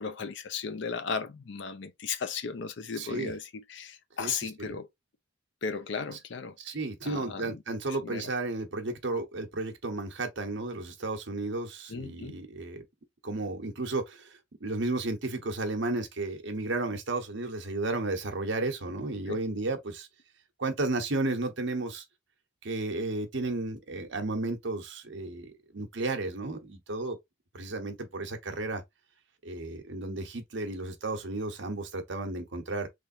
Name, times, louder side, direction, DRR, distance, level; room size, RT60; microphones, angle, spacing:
voice 1, 0.0-4.9 5.6-6.5 7.0-7.6 8.0-8.3 11.9-12.4 19.3-19.4, left 5 dB, 60° left, 0.5 m, -36 dB
voice 2, 3.0-3.3 4.2-4.7 6.6-12.8 13.2-20.1 20.6-22.0 22.6-27.2 27.5-28.8 29.4-32.9, right 2 dB, 65° right, 1.0 m, -33 dB
3.4 x 3.4 x 2.6 m
head